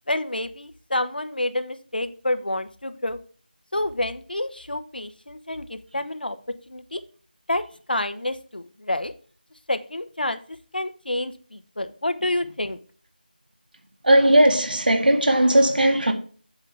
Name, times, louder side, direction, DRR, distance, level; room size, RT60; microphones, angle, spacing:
voice 1, 0.1-3.2 3.7-6.4 6.7-7.0 7.5-9.1 9.7-12.8, left 1 dB, 70° left, 1.1 m, -28 dB
voice 2, 14.0-16.1, right 1 dB, 65° right, 2.1 m, -17 dB
8.3 x 7.3 x 3.5 m
figure-of-eight pair, 175°, 5 cm